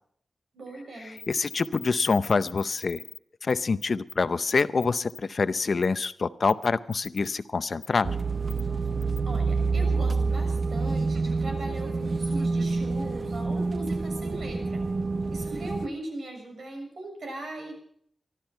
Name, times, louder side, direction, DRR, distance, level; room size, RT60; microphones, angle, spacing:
voice 1, 0.5-1.2 9.3-14.8 15.3-17.7, right 1 dB, 70° right, 3 dB, 6.7 m, -39 dB
sound 1, 1.2-3.2 3.5-3.6 3.8-4.1 4.5-5.2 5.8-6.1 6.5-7.3 7.8-7.9 8.5-8.6 9.0-9.2, left 6 dB, 90° left, 1.1 m, -42 dB
voice 2, 1.3-3.0 3.4-8.1, left 4 dB, 45° left, 12 dB, 0.6 m, -26 dB
sound 2, 8.0-15.9, right 4 dB, 40° right, 0.7 m, -27 dB
24.0 x 12.5 x 4.5 m, 0.64 s
wide cardioid pair, 170°, 0 cm